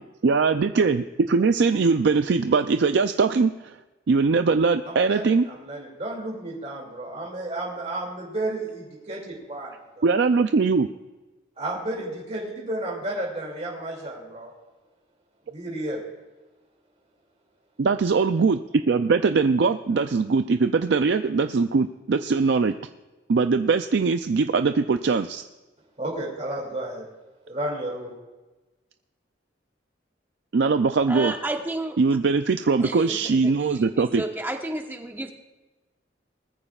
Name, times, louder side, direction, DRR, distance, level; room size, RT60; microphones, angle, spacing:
voice 1, 0.2-3.8 4.1-5.4 10.0-10.9 17.8-18.6 18.9-22.7 23.3-25.4 30.5-31.3 32.0-34.2, right 4 dB, 60° right, 8 dB, 0.4 m, -21 dB
voice 2, 4.9-10.2 11.6-14.5 15.5-16.0 26.0-27.1 27.4-28.2, right 1 dB, 35° right, -2 dB, 2.5 m, -32 dB
voice 3, 31.1-32.0 32.8-33.2 33.4-35.3, right 2 dB, 10° right, 3 dB, 1.1 m, -32 dB
20.5 x 14.0 x 2.4 m, 1.2 s
head